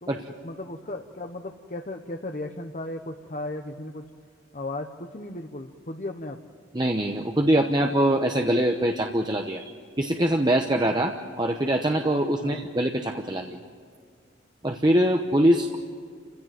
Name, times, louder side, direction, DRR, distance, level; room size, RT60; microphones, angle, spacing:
voice 1, 0.0-4.0 4.5-6.4 12.4-12.6, left 2 dB, 40° left, 4 dB, 1.0 m, -36 dB
voice 2, 6.7-9.6 10.0-13.6 14.6-15.8, right 1 dB, 20° right, 4 dB, 0.9 m, -23 dB
30.0 x 16.5 x 9.2 m, 2.1 s
head